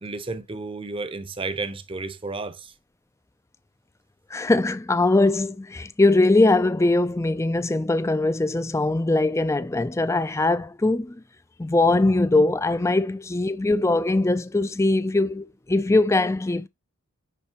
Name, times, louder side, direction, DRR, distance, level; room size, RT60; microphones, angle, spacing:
voice 1, 0.0-2.7, right 3 dB, 25° right, 0.7 m, -32 dB
voice 2, 4.3-11.2 11.6-16.7, left 2 dB, 15° left, 0.3 m, -21 dB
9.8 x 4.1 x 2.9 m
head